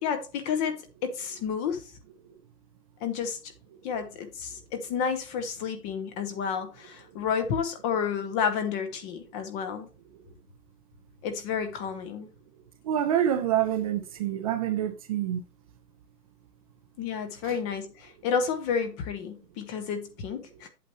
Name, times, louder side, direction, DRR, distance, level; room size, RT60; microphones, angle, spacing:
voice 1, 0.0-1.9 3.0-3.5 3.8-9.9 11.2-12.3 17.0-20.7, left 6 dB, 15° left, 0.6 m, -31 dB
voice 2, 12.8-15.4 17.4-17.6, right 10 dB, 25° right, 0.5 m, -27 dB
8.5 x 7.4 x 3.1 m
hypercardioid pair, 135°, 48 cm